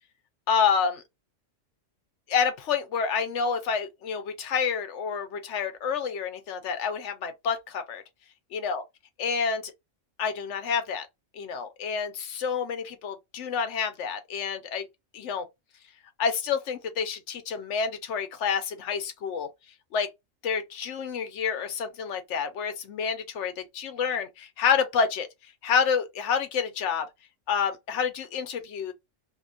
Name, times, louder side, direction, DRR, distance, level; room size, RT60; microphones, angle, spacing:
voice 1, 0.5-1.0 2.3-8.0 8.6-8.8 9.2-9.7 10.2-11.1 11.3-14.9 15.1-15.5 16.2-19.5 19.9-20.1 20.4-25.3 25.6-27.1 27.5-28.9, left 6 dB, 70° left, 0.9 m, -28 dB
2.7 x 2.2 x 2.5 m
omnidirectional pair, 1.3 m